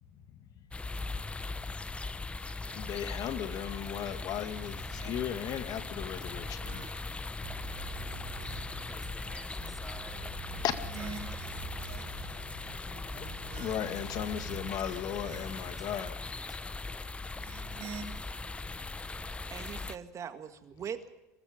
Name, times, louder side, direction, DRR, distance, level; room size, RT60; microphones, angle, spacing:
sound 1, 0.7-20.0, left 3 dB, 15° left, 0.9 m, -39 dB
voice 1, 2.6-6.9 7.7-8.0 10.6-10.8 13.1-13.3 13.6-16.2, left 10 dB, 50° left, 9 dB, 2.0 m, -36 dB
sound 2, 4.3-5.6 6.1-7.3 7.8-8.9 10.4-12.5 13.0-14.2 14.6-15.8 17.2-18.0, right 5 dB, 70° right, 3.6 m, -48 dB
sound 3, 7.4-14.7, right 11 dB, 85° right, 4.8 m, -48 dB
voice 2, 8.9-10.7 11.0-11.5 15.7-16.1 16.4-17.1, right 1 dB, 5° right, 5 dB, 3.0 m, -53 dB
voice 3, 19.2-21.1, right 7 dB, 40° right, 9 dB, 1.8 m, -42 dB
24.0 x 21.0 x 5.2 m, 1.0 s
supercardioid pair, 95°, 8 cm